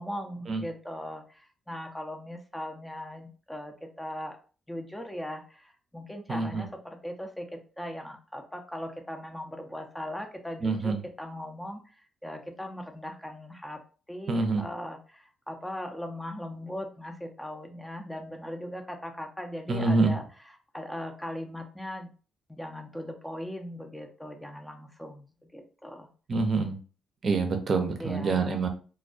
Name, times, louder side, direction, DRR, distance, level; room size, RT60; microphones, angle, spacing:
voice 1, 0.0-4.4 4.7-13.8 14.1-20.2 20.7-22.1 22.5-26.1 28.0-28.5, left 1 dB, 5° left, 3 dB, 0.5 m, -39 dB
voice 2, 6.3-6.6 10.6-11.0 14.3-14.6 19.7-20.2 26.3-26.8 27.2-28.7, right 3 dB, 45° right, 5 dB, 0.6 m, -26 dB
2.2 x 2.2 x 2.5 m, 0.37 s
cardioid pair, 90°, 0 cm